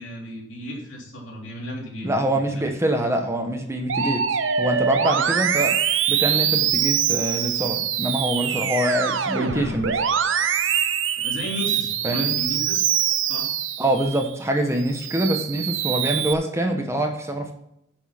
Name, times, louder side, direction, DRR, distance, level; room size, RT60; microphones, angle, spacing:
voice 1, 0.0-2.6 9.4-9.8 11.1-12.9 13.2-13.5, equal, 70° left, -2 dB, 3.4 m, -34 dB
voice 2, 2.0-4.2 4.6-5.7 6.1-9.9 12.0-12.3 13.8-17.5, right 1 dB, 15° right, 3 dB, 1.2 m, -24 dB
Musical instrument, 3.9-14.3 14.8-16.3, right 8 dB, 75° right, 0.7 m, -24 dB
9.9 x 6.3 x 5.9 m, 0.78 s
head